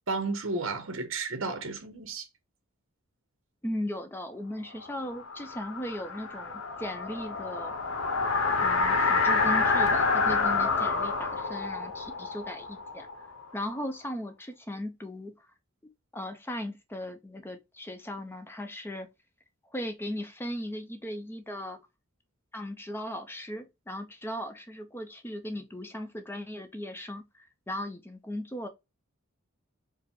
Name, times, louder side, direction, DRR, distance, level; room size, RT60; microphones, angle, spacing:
voice 1, 0.1-2.2, right 3 dB, 65° right, 0.8 m, -32 dB
voice 2, 3.6-7.7 8.6-13.3 13.5-15.5 16.1-19.1 19.7-21.8 22.5-28.7, left 1 dB, 10° left, 0.5 m, -37 dB
sound 1, 4.8-13.7, left 4 dB, 75° left, 0.8 m, -28 dB
4.7 x 2.0 x 3.6 m
head